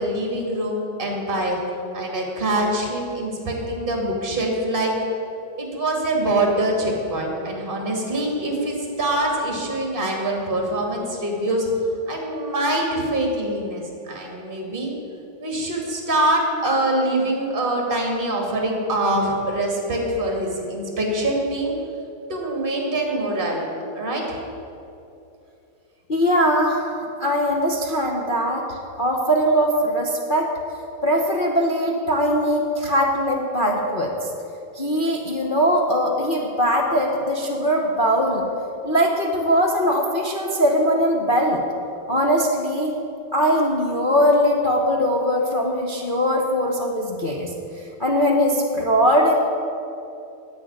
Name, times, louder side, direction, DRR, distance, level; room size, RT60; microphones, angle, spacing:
voice 1, 0.0-1.6 1.9-4.9 5.6-11.7 12.1-14.9 15.4-21.7 22.3-23.7 23.9-24.4, right 1 dB, 25° right, 0 dB, 2.3 m, -24 dB
voice 2, 26.1-26.9 27.2-30.5 31.0-34.3 34.7-38.5 38.8-41.6 42.1-42.9 43.3-47.5 48.0-49.3, equal, 40° left, -1 dB, 0.8 m, -21 dB
10.5 x 7.9 x 9.4 m, 2.7 s
omnidirectional pair, 2.3 m